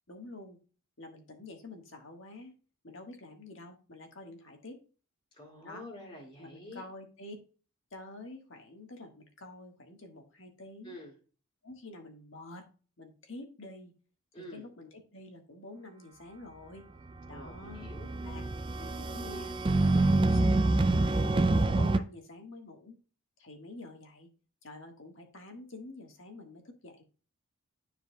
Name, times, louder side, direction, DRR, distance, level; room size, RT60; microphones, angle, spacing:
voice 1, 0.1-0.6 1.0-2.5 2.8-4.8 5.6-5.8 6.4-7.4 7.9-11.0 11.6-12.7 13.0-13.9 14.3-16.8 17.3-17.9 18.2-18.4 18.8-21.5 21.7-23.0 23.4-24.3 24.6-27.0, left 2 dB, 60° left, 3 dB, 1.6 m, -48 dB
voice 2, 5.3-6.8 10.8-11.1 14.3-14.6 17.3-18.1, left 1 dB, 25° left, -3 dB, 2.1 m, -47 dB
sound 1, 17.2-22.0, right 2 dB, 20° right, 0.3 m, -26 dB
12.5 x 4.6 x 2.3 m, 0.37 s
head